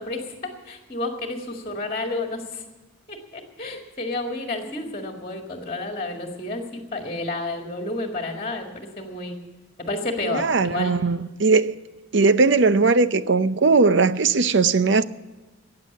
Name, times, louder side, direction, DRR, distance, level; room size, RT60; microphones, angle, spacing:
voice 1, 0.0-2.6 3.1-9.4 9.8-11.0, left 2 dB, 25° left, 1.9 m, -31 dB
voice 2, 10.2-11.7 12.1-15.0, right 4 dB, 55° right, 0.6 m, -19 dB
15.0 x 9.6 x 8.3 m
head